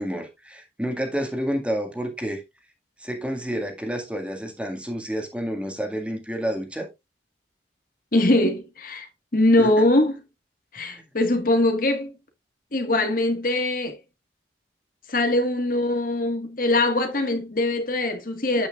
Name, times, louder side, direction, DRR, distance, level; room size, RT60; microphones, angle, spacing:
voice 1, 0.0-2.4 3.0-6.9 9.6-9.7 10.8-11.0, equal, 5° right, 1.8 m, -29 dB
voice 2, 8.1-10.1 10.7-12.1 12.7-14.0 15.1-18.7, left 1 dB, 50° left, 1.5 m, -22 dB
9.0 x 8.9 x 2.4 m
head